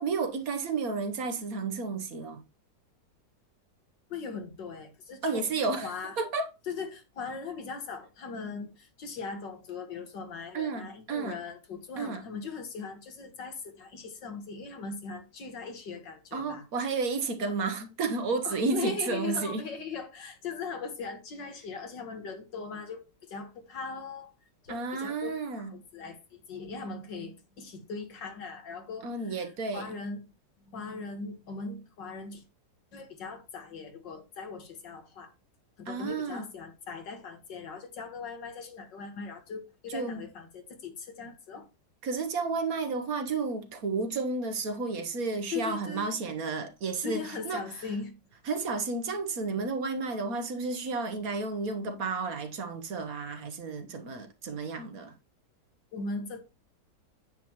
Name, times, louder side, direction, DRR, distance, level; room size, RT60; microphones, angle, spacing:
voice 1, 0.0-2.4 5.2-6.5 10.5-11.4 12.0-12.2 16.3-19.7 24.7-25.7 29.0-29.9 35.9-36.4 39.9-40.2 42.0-47.7 48.4-55.1, right 4 dB, 60° right, 1.3 m, -32 dB
voice 2, 4.1-5.5 5.8-6.2 6.7-16.6 17.4-17.5 18.4-24.3 24.6-29.4 29.7-30.2 30.7-32.4 32.9-35.3 35.8-41.7 45.5-46.1 47.0-48.1 55.9-56.4, left 5 dB, 80° left, 2.2 m, -39 dB
9.3 x 7.4 x 3.0 m
omnidirectional pair, 1.9 m